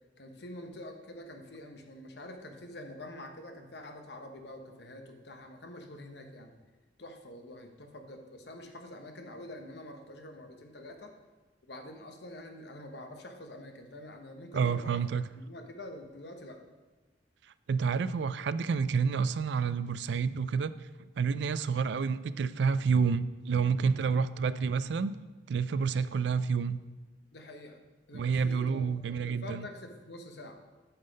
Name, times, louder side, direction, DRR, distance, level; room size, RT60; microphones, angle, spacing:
voice 1, 0.2-6.5 7.0-11.1 11.7-15.0 15.3-16.6 27.3-30.6, left 1 dB, 60° left, 5 dB, 1.0 m, -46 dB
voice 2, 14.5-15.3 17.7-20.7 21.2-25.2 25.5-26.8 28.1-29.7, right 5 dB, 65° right, 14 dB, 0.3 m, -29 dB
8.7 x 5.6 x 5.2 m, 1.3 s
head